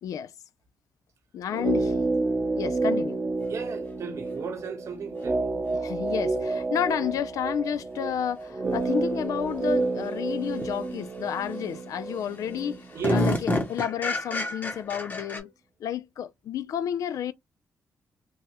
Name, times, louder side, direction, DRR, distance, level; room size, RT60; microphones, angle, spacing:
voice 1, 1.3-1.9 2.5-3.2 5.7-15.5 15.8-17.3, left 9 dB, 75° left, 0.4 m, -31 dB
sound 1, 1.5-13.6 13.9-14.0, right 3 dB, 30° right, 0.8 m, -30 dB
voice 2, 3.5-5.5 12.9-13.3, right 6 dB, 60° right, 1.0 m, -34 dB
sound 2, 7.8-7.9 10.6-10.7 11.2-11.7 12.1-12.2 12.5-15.4, left 1 dB, 30° left, 1.0 m, -29 dB
3.4 x 2.2 x 2.8 m
cardioid pair, 110°, 6 cm